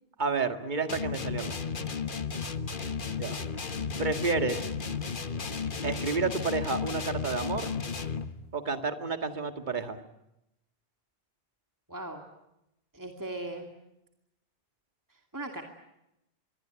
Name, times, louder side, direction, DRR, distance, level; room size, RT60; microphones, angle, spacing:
voice 1, 0.2-1.6 3.2-3.4 4.0-4.7 5.8-7.7 8.5-10.0, right 4 dB, 45° right, 8 dB, 2.0 m, -30 dB
sound 1, 0.9-8.4, left 5 dB, 55° left, 1.4 m, -34 dB
voice 2, 11.9-12.2 12.9-13.7 15.3-15.6, right 2 dB, 20° right, 3 dB, 2.5 m, -38 dB
26.0 x 23.5 x 9.2 m, 0.87 s
omnidirectional pair, 1.1 m